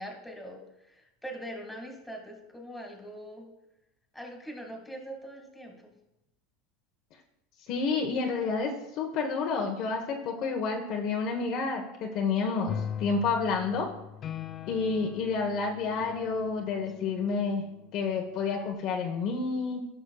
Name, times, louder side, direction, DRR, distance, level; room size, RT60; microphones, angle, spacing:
voice 1, 0.0-3.5 4.1-5.9, equal, 5° left, 1 dB, 2.0 m, -42 dB
voice 2, 7.7-13.9 14.7-17.6 17.9-19.8, left 4 dB, 50° left, 1 dB, 1.1 m, -29 dB
sound 1, 12.7-17.7 18.5-18.7, left 8 dB, 35° left, 0.4 m, -40 dB
15.0 x 6.1 x 2.3 m, 0.89 s
supercardioid pair, 135°, 0 cm